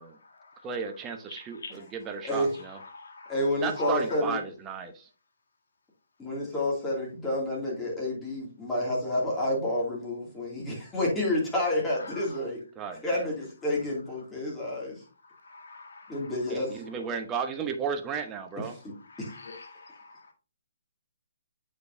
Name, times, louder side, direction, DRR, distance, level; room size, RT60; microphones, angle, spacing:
voice 1, 0.0-4.2 12.0-12.4 15.0-16.9 18.8-20.3, left 3 dB, 65° left, 1.9 m, -45 dB
voice 2, 0.6-2.8 3.6-5.1 12.8-13.3 16.5-18.8, right 6 dB, 20° right, 0.9 m, -34 dB
voice 3, 3.3-4.4 6.2-12.6 13.0-15.0 16.1-16.8 18.8-18.9 19.2-19.3, left 1 dB, 10° left, 2.5 m, -29 dB
8.1 x 5.2 x 2.7 m
hypercardioid pair, 145°, 0 cm